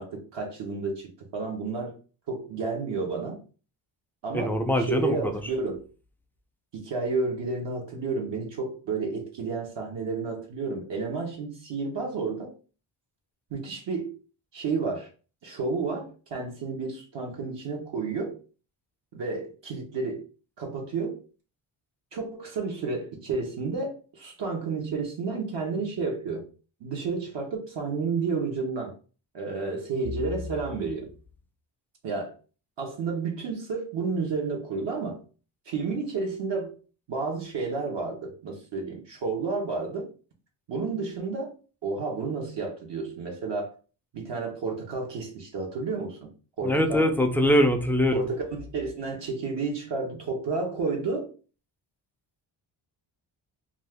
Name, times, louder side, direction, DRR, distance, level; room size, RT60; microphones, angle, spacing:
voice 1, 0.0-2.0 2.3-3.4 4.2-5.8 6.7-12.5 13.5-14.2 14.5-15.1 15.4-18.4 19.1-20.2 20.6-21.2 22.1-26.5 26.8-28.9 29.3-31.1 32.0-32.3 32.8-35.2 35.7-36.7 37.1-40.1 40.7-41.5 41.8-43.7 44.1-46.3 46.6-47.1 48.1-51.3, right 4 dB, 65° right, 0 dB, 1.0 m, -31 dB
voice 2, 4.3-5.4 46.6-48.3, equal, 5° left, 5 dB, 0.4 m, -23 dB
2.6 x 2.4 x 3.4 m, 0.36 s
cardioid pair, 100°, 47 cm